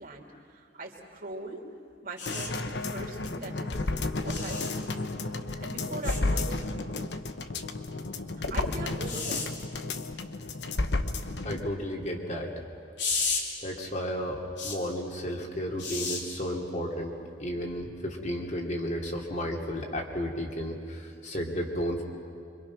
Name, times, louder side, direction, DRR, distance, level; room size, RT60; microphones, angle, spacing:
voice 1, 0.0-1.7 2.0-3.7 4.2-4.8 5.6-6.8 8.5-9.6, right 2 dB, 55° right, 0 dB, 3.1 m, -40 dB
sound 1, 2.2-2.5 4.3-4.7 6.0-6.2 9.0-9.5 13.0-13.4 14.6-14.8 15.8-16.2 17.7-17.9, left 4 dB, 90° left, 3.1 m, -32 dB
sound 2, 2.3-11.7 12.0-12.1, left 2 dB, 75° left, 1.1 m, -32 dB
voice 2, 11.4-12.5 13.6-17.1 17.4-22.0, equal, 45° left, 0 dB, 2.9 m, -33 dB
27.5 x 24.5 x 6.0 m, 2.5 s
head